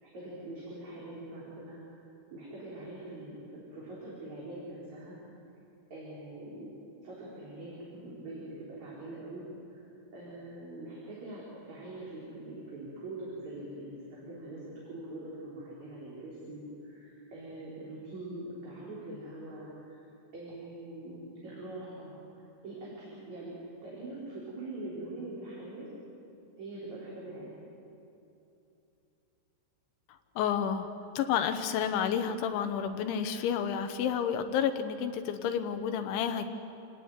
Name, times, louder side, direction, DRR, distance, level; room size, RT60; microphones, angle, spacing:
voice 1, 0.0-2.0 2.3-5.2 5.9-6.7 7.0-9.4 9.7-9.8 10.1-20.0 20.3-22.2 22.6-23.5 23.8-25.9 26.6-27.6, right 2 dB, 35° right, -6 dB, 5.3 m, -43 dB
voice 2, 30.4-30.9 31.2-36.5, left 8 dB, 75° left, 8 dB, 3.2 m, -30 dB
28.0 x 17.5 x 9.5 m, 2.8 s
omnidirectional pair, 5.7 m